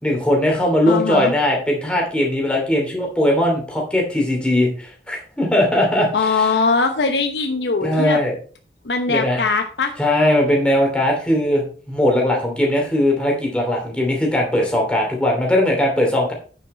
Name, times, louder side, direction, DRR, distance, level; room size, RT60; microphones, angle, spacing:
voice 1, 0.0-6.1 6.4-6.5 7.8-8.3 9.1-9.4 10.0-16.3, left 1 dB, 5° left, -1 dB, 2.8 m, -19 dB
voice 2, 0.9-1.3 6.1-8.2 8.8-9.9, left 4 dB, 80° left, 5 dB, 0.9 m, -20 dB
9.5 x 6.7 x 4.3 m, 0.40 s
head